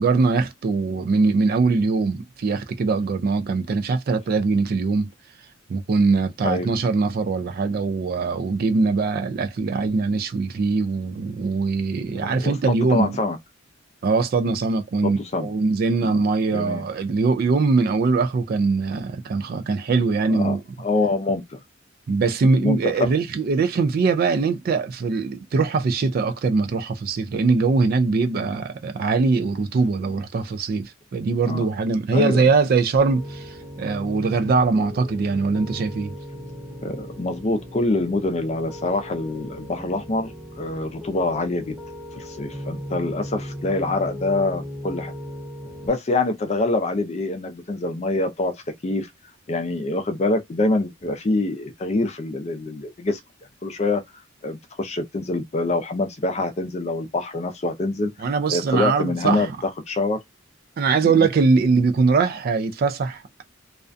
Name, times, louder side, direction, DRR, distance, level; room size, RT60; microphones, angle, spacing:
voice 1, 0.0-5.1 5.7-13.2 14.0-20.6 22.1-36.2 58.2-59.6 60.8-63.4, right 4 dB, 45° right, 0.3 m, -22 dB
voice 2, 12.1-13.4 15.0-15.5 16.0-16.2 16.5-16.8 20.3-21.6 22.6-22.9 31.4-31.7 32.1-32.4 36.8-41.7 42.2-45.1 45.9-48.5 48.8-49.1 49.5-53.2 53.6-54.0 54.4-59.5 59.9-60.2 61.0-61.3, left 2 dB, 35° left, 0.4 m, -25 dB
Piano, 33.0-45.9, left 1 dB, 5° right, 0.9 m, -37 dB
2.4 x 2.1 x 2.5 m
head